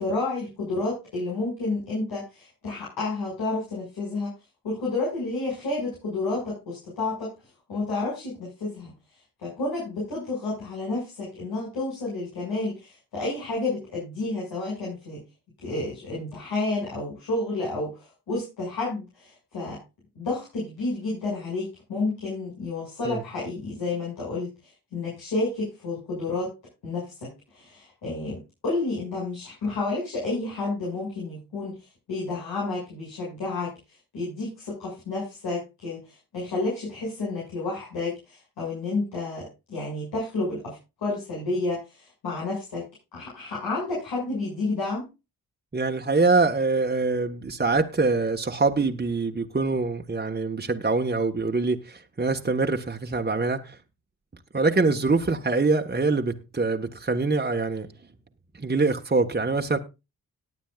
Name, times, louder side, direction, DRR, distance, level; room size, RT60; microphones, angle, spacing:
voice 1, 0.0-4.3 4.6-7.3 7.7-8.9 9.4-15.2 15.6-19.8 20.2-24.5 24.9-26.5 26.8-31.8 32.1-33.7 34.1-42.9 43.1-45.1, left 2 dB, 85° left, 6.8 m, -30 dB
voice 2, 45.7-53.8 54.5-57.9 58.6-59.8, right 3 dB, 25° right, 1.6 m, -24 dB
19.0 x 8.8 x 2.5 m
supercardioid pair, 40°, 37 cm